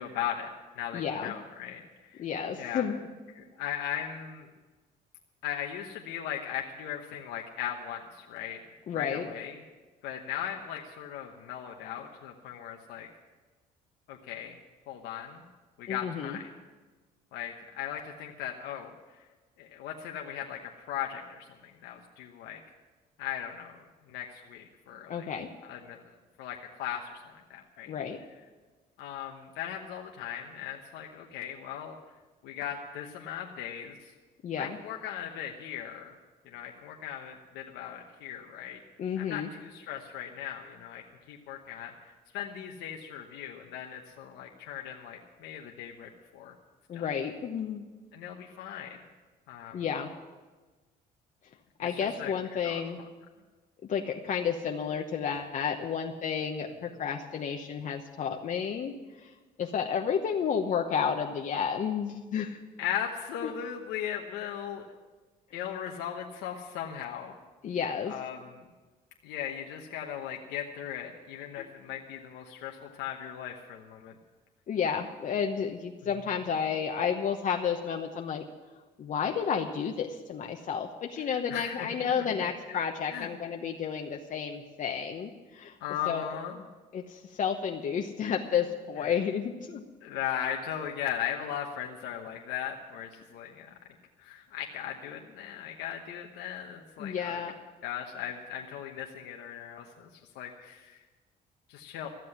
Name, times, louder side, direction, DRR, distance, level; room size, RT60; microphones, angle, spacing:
voice 1, 0.0-1.8 2.1-2.2 2.6-2.9 3.3-4.5 5.4-8.6 8.9-9.6 10.0-13.1 14.1-14.6 14.9-15.4 15.8-16.5 17.3-18.9 19.6-22.6 23.2-23.8 24.1-25.3 25.6-26.0 26.4-27.9 29.0-32.0 32.4-34.1 34.6-36.1 36.4-38.8 39.2-46.5 46.9-47.1 48.1-49.0 49.5-49.8 51.8-52.3 52.6-52.8 62.8-64.9 65.5-67.3 68.0-68.7 69.2-74.1 81.3-82.3 82.7-82.8 83.1-83.3 85.8-86.5 89.0-89.1 90.0-93.7 94.2-97.4 97.8-100.1 100.3-101.0 101.7-102.1, left 10 dB, 90° left, 1 dB, 1.1 m, -38 dB
voice 2, 0.9-1.3 2.2-3.1 8.9-9.3 15.9-16.4 25.1-25.5 27.9-28.2 34.4-34.8 39.0-39.5 46.9-47.9 49.7-50.1 51.8-53.0 53.9-59.3 59.6-62.6 63.4-63.5 67.6-68.1 71.6-71.7 74.7-78.4 79.0-85.8 86.1-86.3 86.9-89.8 97.0-97.5, left 7 dB, 50° left, 3 dB, 1.0 m, -31 dB
14.0 x 7.7 x 9.9 m, 1.3 s
cardioid pair, 110°, 17 cm